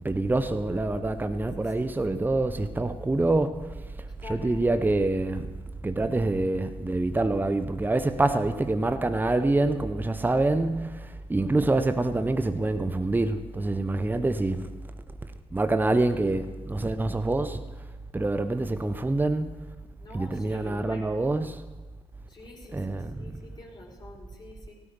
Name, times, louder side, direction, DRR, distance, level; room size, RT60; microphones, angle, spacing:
voice 1, 0.0-3.8 4.3-5.5 5.8-14.7 15.5-17.6 18.1-19.7 20.1-21.6 22.7-23.4, right 2 dB, 15° right, 1.0 m, -26 dB
voice 2, 4.2-4.8 20.0-21.2 22.3-24.7, left 2 dB, 30° left, 5.3 m, -46 dB
18.0 x 14.5 x 4.7 m
figure-of-eight pair, 45°, 14 cm